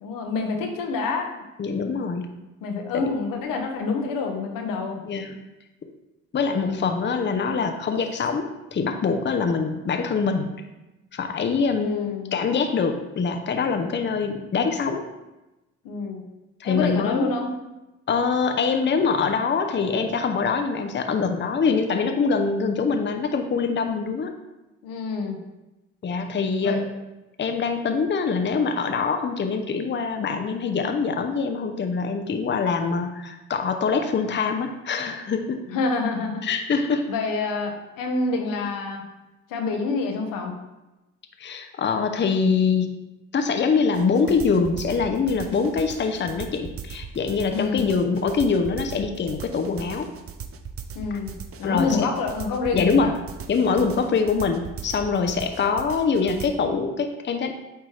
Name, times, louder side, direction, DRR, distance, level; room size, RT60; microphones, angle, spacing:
voice 1, 0.0-1.3 2.6-5.0 6.5-6.9 11.8-12.3 15.8-16.2 16.6-17.5 24.8-25.4 26.6-26.8 35.7-36.4 37.1-39.0 39.5-40.5 47.5-47.9 50.9-53.1, left 4 dB, 80° left, 2 dB, 1.0 m, -27 dB
voice 2, 1.6-2.3 2.9-3.1 5.1-5.4 6.3-10.5 11.1-15.1 16.6-17.3 18.1-24.3 26.0-26.9 27.4-35.6 36.4-37.1 41.4-42.9 43.3-50.1 51.6-52.1 52.7-53.1 53.5-57.6, left 5 dB, 35° left, 6 dB, 0.7 m, -24 dB
sound 1, 43.9-56.5, right 7 dB, 45° right, 0.7 m, -38 dB
8.8 x 3.4 x 3.3 m, 1.0 s
hypercardioid pair, 50°, 33 cm